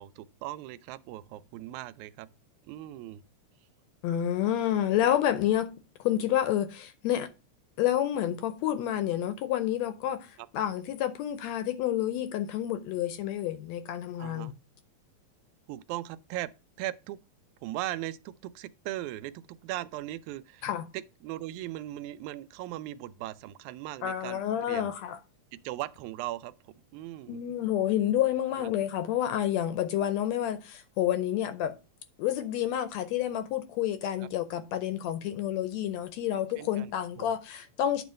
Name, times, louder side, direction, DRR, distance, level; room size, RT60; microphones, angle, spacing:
voice 1, 0.0-2.3 2.6-3.2 14.2-14.5 15.7-16.5 16.8-17.2 17.6-24.4 24.7-24.9 25.5-27.4 28.6-28.7 34.2-34.3 36.6-36.9 37.2-37.4, right 15 dB, 85° right, 1.9 m, -38 dB
voice 2, 4.0-5.7 6.0-7.3 7.8-14.5 20.6-20.9 24.0-25.2 27.3-31.8 32.2-38.0, left 11 dB, 75° left, 1.7 m, -29 dB
9.3 x 3.1 x 6.3 m
omnidirectional pair, 3.4 m